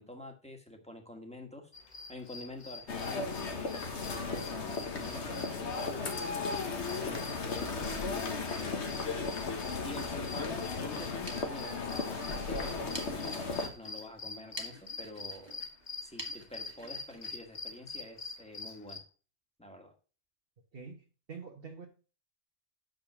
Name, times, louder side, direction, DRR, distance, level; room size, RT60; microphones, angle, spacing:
voice 1, 0.0-1.7 2.1-6.2 6.7-8.9 9.8-15.6 16.0-19.0 19.6-19.9, left 1 dB, 5° left, 1.5 m, -47 dB
sound 1, 1.7-19.0, left 3 dB, 40° left, 1.2 m, -46 dB
sound 2, 2.9-13.7, left 4 dB, 80° left, 1.5 m, -35 dB
sound 3, 11.0-18.5, right 2 dB, 25° right, 1.5 m, -50 dB
voice 2, 20.7-21.0 21.3-21.9, right 5 dB, 60° right, 1.5 m, -45 dB
6.9 x 5.3 x 5.9 m
omnidirectional pair, 1.1 m